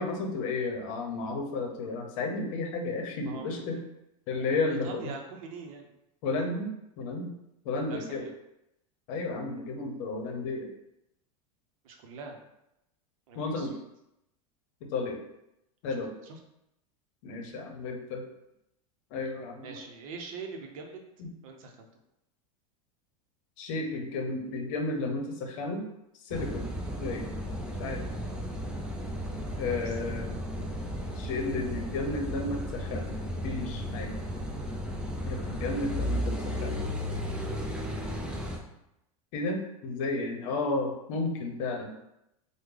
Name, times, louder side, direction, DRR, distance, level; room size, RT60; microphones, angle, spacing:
voice 1, 0.0-3.8 4.3-5.1 6.2-6.7 7.0-7.3 7.6-8.3 9.1-10.7 13.4-13.7 14.8-15.2 15.8-16.1 17.2-18.2 19.1-19.8 21.2-21.3 23.6-25.8 26.2-26.7 27.0-27.3 27.8-28.1 29.6-30.3 31.2-33.1 33.4-34.1 35.2-36.8 39.3-41.9, left 3 dB, 65° left, 3 dB, 0.8 m, -32 dB
voice 2, 3.2-3.8 4.4-5.9 7.9-8.3 11.8-12.4 13.3-13.8 16.2-16.4 19.6-21.0 21.4-21.9 29.9-30.1 30.6-30.7, right 4 dB, 70° right, 3 dB, 0.7 m, -43 dB
Car passing by / Idling / Accelerating revving vroom, 26.3-38.6, equal, 5° right, 0.4 m, -34 dB
3.2 x 2.2 x 3.6 m, 0.85 s
supercardioid pair, 125°, 18 cm